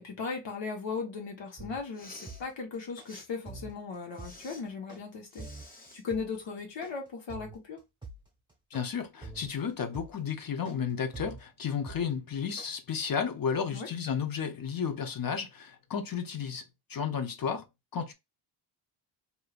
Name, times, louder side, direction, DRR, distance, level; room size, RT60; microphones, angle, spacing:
voice 1, 0.0-5.4 5.9-7.8 13.7-13.9, left 4 dB, 65° left, 1.3 m, -37 dB
sound 1, 1.6-12.7, right 3 dB, 10° right, 1.2 m, -45 dB
Respiratory sounds, 1.9-2.4 3.0-3.3 4.1-4.6 5.3-6.0, left 2 dB, 20° left, 0.9 m, -51 dB
voice 2, 8.7-16.6 16.9-17.7 17.9-18.1, left 7 dB, 45° left, 0.7 m, -33 dB
3.2 x 2.8 x 2.4 m
cardioid pair, 115°, 49 cm